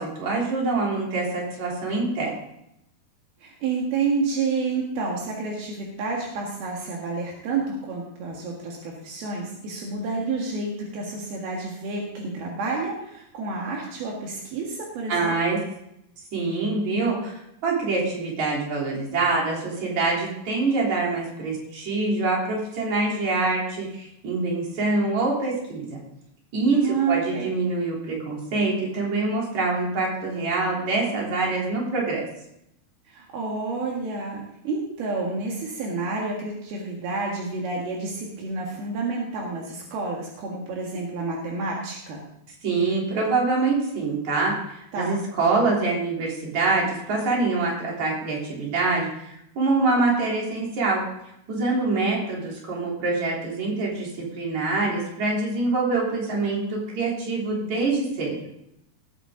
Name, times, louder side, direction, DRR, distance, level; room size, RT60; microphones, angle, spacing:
voice 1, 0.0-2.3 15.1-15.6 16.3-25.9 26.5-32.2 42.6-51.0 51.5-58.4, right 3 dB, 50° right, -3 dB, 4.6 m, -25 dB
voice 2, 3.4-15.3 26.7-27.5 33.1-42.2 44.9-45.1, right 4 dB, 75° right, -1 dB, 3.6 m, -29 dB
19.5 x 8.8 x 3.8 m, 0.81 s
omnidirectional pair, 4.4 m